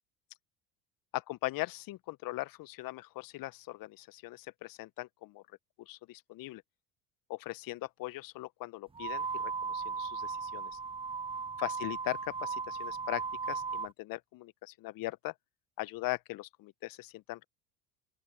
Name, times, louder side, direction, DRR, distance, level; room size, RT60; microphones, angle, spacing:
voice 1, 1.1-5.4 5.8-6.6 7.3-10.8 11.6-15.3 15.8-17.4, left 18 dB, 50° left, 1.5 m, -40 dB
sound 1, 8.9-13.9, right 5 dB, 10° right, 0.7 m, -37 dB
open air
hypercardioid pair, 70°, 44 cm